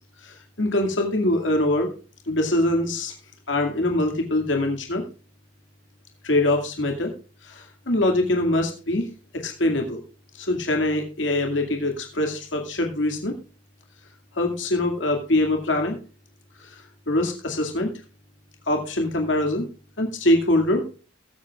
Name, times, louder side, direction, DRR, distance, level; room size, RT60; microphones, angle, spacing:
voice 1, 0.2-1.9 2.3-3.1 3.5-5.0 6.2-7.1 7.5-9.0 9.3-10.0 10.4-13.3 14.4-16.0 17.1-17.9 18.7-19.7 20.0-20.8, left 1 dB, 90° left, 2 dB, 2.3 m, -23 dB
20.0 x 8.2 x 2.4 m, 0.36 s
head